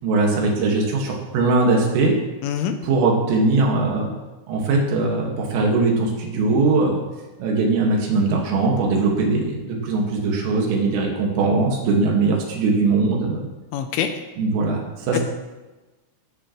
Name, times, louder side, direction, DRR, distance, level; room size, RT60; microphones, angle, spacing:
voice 1, 0.0-2.2 2.8-4.1 4.5-7.0 7.4-13.4 14.4-15.2, right 3 dB, 90° right, 0 dB, 4.7 m, -20 dB
voice 2, 2.4-2.8 13.7-14.1 15.1-15.2, left 9 dB, 80° left, 7 dB, 3.3 m, -24 dB
18.5 x 10.5 x 3.2 m, 1.1 s
omnidirectional pair, 5.7 m